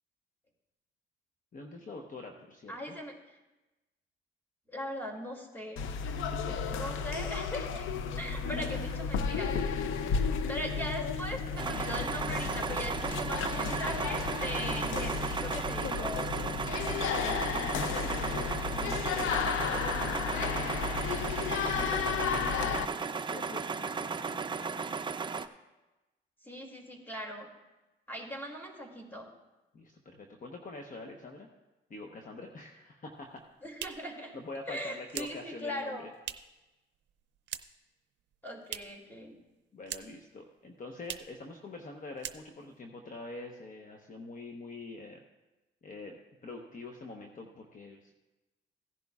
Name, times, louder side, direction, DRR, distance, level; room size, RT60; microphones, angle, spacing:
voice 1, 1.5-2.9 6.1-7.0 8.5-8.8 14.6-15.1 16.9-20.7 21.3-25.1 29.7-31.5 31.9-33.4 34.3-36.0 39.7-45.2 45.8-46.1 46.4-48.1, left 3 dB, 40° left, 2 dB, 1.0 m, -45 dB
voice 2, 2.7-3.1 4.7-5.8 6.7-7.8 8.2-9.7 10.5-16.1 26.4-27.5 28.1-29.3 33.6-34.4 34.7-36.1 38.4-39.4, equal, 10° left, 0 dB, 2.5 m, -40 dB
sound 1, 5.8-22.9, left 6 dB, 90° left, 0.6 m, -33 dB
sound 2, 11.6-25.5, right 5 dB, 25° right, 0.5 m, -35 dB
sound 3, 33.2-36.7 36.9-37.9 38.2-39.1 39.4-40.3 40.6-40.7 41.0-41.4 41.8-41.9 42.2-42.8, right 10 dB, 65° right, 0.6 m, -43 dB
16.5 x 10.5 x 2.4 m, 1.0 s
cardioid pair, 90°, 20 cm